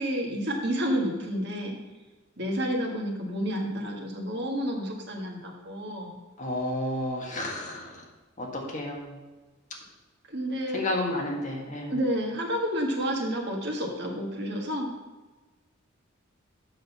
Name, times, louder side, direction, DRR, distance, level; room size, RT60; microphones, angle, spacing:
voice 1, 0.0-1.8 2.4-6.2 10.3-10.8 11.9-14.9, equal, 55° right, 1 dB, 1.7 m, -30 dB
voice 2, 6.4-8.0 8.4-9.2 10.7-11.9, left 1 dB, 40° left, 0 dB, 1.7 m, -31 dB
7.8 x 6.5 x 5.5 m, 1.2 s
head